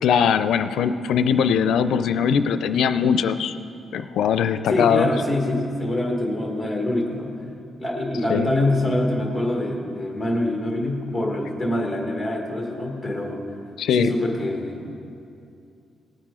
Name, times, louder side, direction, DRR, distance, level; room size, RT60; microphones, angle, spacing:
voice 1, 0.0-3.5 3.9-5.1 8.3-8.5 13.8-14.1, left 7 dB, 85° left, 11 dB, 0.4 m, -21 dB
voice 2, 4.7-7.3 7.8-13.5 14.0-14.9, left 1 dB, 10° left, 0 dB, 1.6 m, -25 dB
18.5 x 9.0 x 3.8 m, 2.6 s
wide cardioid pair, 160°, 0 cm